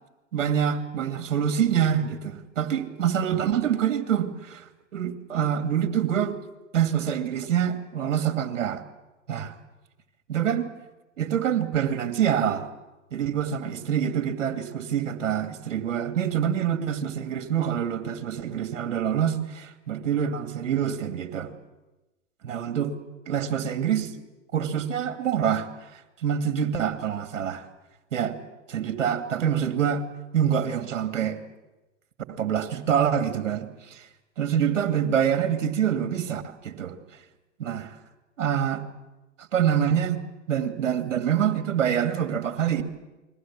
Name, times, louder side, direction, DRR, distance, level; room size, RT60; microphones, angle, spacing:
voice 1, 0.3-6.4 6.7-8.8 9.3-9.5 10.3-10.7 11.2-12.7 13.1-21.5 22.4-22.9 23.3-24.1 24.5-27.6 28.1-28.4 28.7-30.0 30.3-31.4 32.3-34.1 34.4-37.0 37.6-38.0 38.4-38.8 39.4-40.2 40.5-42.8, right 9 dB, 65° right, 2.6 m, -26 dB
29.5 x 22.0 x 7.4 m
hypercardioid pair, 110°, 39 cm